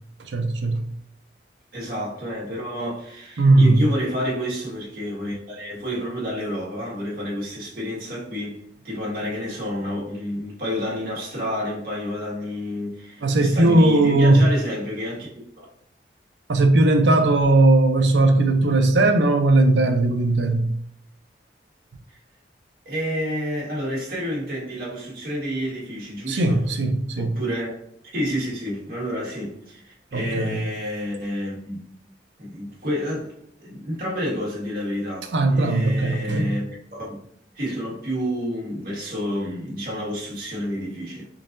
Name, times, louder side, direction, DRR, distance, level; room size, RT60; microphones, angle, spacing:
voice 1, 0.2-0.8 3.4-3.8 13.2-14.5 16.5-20.7 26.3-27.3 30.1-30.6 35.3-36.6, right 2 dB, 85° right, 0.6 m, -18 dB
voice 2, 1.7-8.6 8.8-15.3 15.6-15.7 22.9-26.6 27.2-27.7 28.1-31.8 32.4-33.3 33.6-37.2 37.6-41.3, equal, 55° right, 1.6 m, -29 dB
3.9 x 3.9 x 2.6 m
head